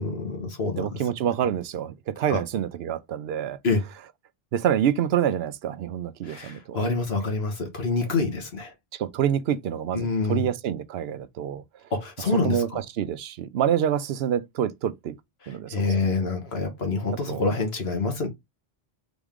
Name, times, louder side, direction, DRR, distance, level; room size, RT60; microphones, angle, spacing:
voice 1, 0.0-1.0 2.3-2.4 3.6-3.8 6.2-8.7 9.9-10.5 11.9-12.8 15.4-18.3, left 3 dB, 80° left, 1.6 m, -27 dB
voice 2, 0.8-3.6 4.5-6.8 8.9-11.6 12.4-15.2 15.5-15.9 17.3-17.4, right 9 dB, 75° right, 0.8 m, -27 dB
4.0 x 3.6 x 3.5 m
omnidirectional pair, 1.0 m